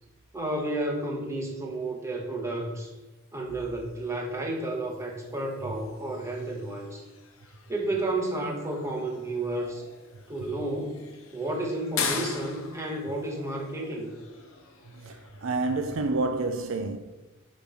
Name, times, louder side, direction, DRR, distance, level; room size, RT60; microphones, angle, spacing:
voice 1, 0.3-2.9 3.3-7.0 7.7-9.8 10.3-14.1, right 2 dB, 15° right, 1.1 m, -31 dB
sound 1, 3.5-15.5, left 6 dB, 70° left, 0.8 m, -41 dB
voice 2, 14.9-17.0, right 3 dB, 70° right, 0.5 m, -29 dB
6.7 x 3.2 x 5.5 m
head